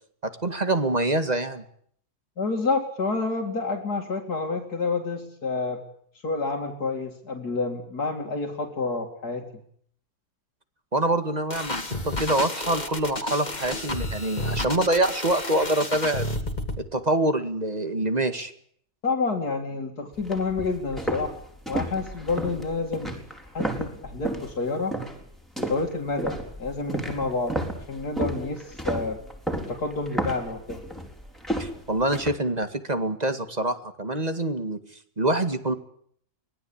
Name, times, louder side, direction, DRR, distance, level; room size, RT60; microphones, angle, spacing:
voice 1, 0.2-1.6 10.9-11.7 12.1-16.3 16.9-18.5 31.6-34.8 35.2-35.7, right 1 dB, 25° right, 9 dB, 2.1 m, -25 dB
voice 2, 2.4-5.8 6.2-9.5 19.0-21.4 21.7-23.2 23.5-25.0 25.6-27.6 27.9-29.2 29.6-30.8, left 3 dB, 80° left, 2 dB, 3.0 m, -29 dB
sound 1, 11.5-16.8, left 1 dB, 25° left, 2.5 m, -31 dB
sound 2, 20.1-24.5 24.9-25.2 25.6-32.3, right 1 dB, ahead, 4.3 m, -32 dB
24.5 x 19.5 x 8.8 m, 0.63 s
omnidirectional pair, 1.6 m